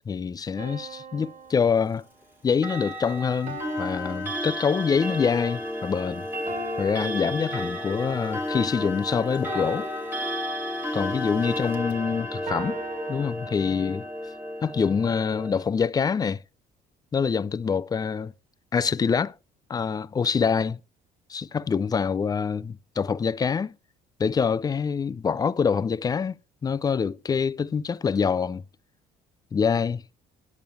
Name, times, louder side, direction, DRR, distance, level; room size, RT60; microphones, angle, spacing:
voice 1, 0.1-2.0 2.4-6.3 6.8-9.9 10.9-12.8 13.1-14.1 14.6-16.4 17.1-18.3 18.7-19.3 19.7-20.8 21.3-23.8 24.2-28.6 29.5-30.0, left 6 dB, 25° left, 0.4 m, -25 dB
sound 1, 0.6-2.4 3.5-5.1 6.5-8.1 9.5-11.0 12.5-13.2, right 3 dB, 45° right, 1.6 m, -40 dB
Clock, 2.5-15.6, left 1 dB, 10° right, 1.4 m, -32 dB
10.5 x 6.9 x 3.4 m
cardioid pair, 110°, 17 cm